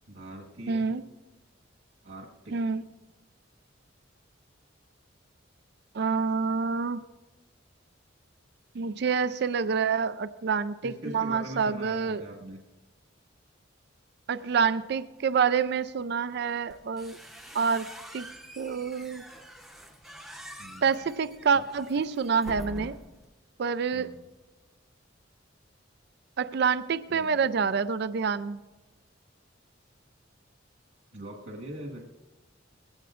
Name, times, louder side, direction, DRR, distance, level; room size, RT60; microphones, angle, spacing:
voice 1, 0.1-0.9 2.0-2.6 10.8-12.6 20.6-20.9 21.5-21.6 23.9-24.2 27.1-27.4 31.1-32.0, right 1 dB, 80° right, -1 dB, 1.6 m, -42 dB
voice 2, 0.7-1.0 2.5-2.8 5.9-7.0 8.7-12.2 14.3-17.2 17.5-17.9 18.1-18.3 18.6-19.2 20.8-22.9 23.6-24.1 26.4-28.6, right 6 dB, 55° right, 13 dB, 0.4 m, -27 dB
sound 1, 16.7-23.3, equal, ahead, 0.8 m, -45 dB
20.5 x 16.0 x 2.5 m, 1.2 s
head